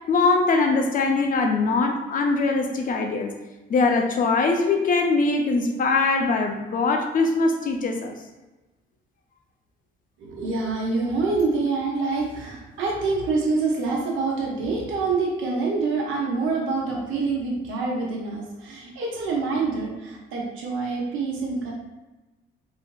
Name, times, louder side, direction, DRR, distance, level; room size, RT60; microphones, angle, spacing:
voice 1, 0.1-3.3 3.7-8.2, left 3 dB, 45° left, 4 dB, 0.4 m, -22 dB
voice 2, 10.2-21.7, right 3 dB, 85° right, -2 dB, 0.7 m, -26 dB
3.2 x 2.0 x 2.3 m, 1.1 s
cardioid pair, 90°, 20 cm